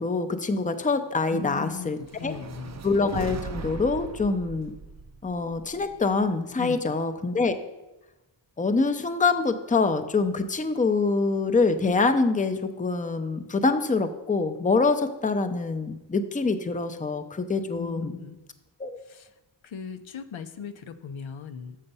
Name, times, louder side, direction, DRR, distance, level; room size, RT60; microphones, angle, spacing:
voice 1, 0.0-2.3 2.8-4.7 5.2-7.5 8.6-18.1 18.8-19.0, left 4 dB, 15° left, 8 dB, 0.6 m, -25 dB
voice 2, 1.3-2.8 6.6-6.9 17.7-18.4 19.1-19.3 19.6-21.8, left 6 dB, 80° left, 9 dB, 0.7 m, -38 dB
sound 1, 2.0-6.3, right 5 dB, 40° right, 0.4 m, -39 dB
7.0 x 6.5 x 5.4 m, 1.0 s
wide cardioid pair, 75°, 47 cm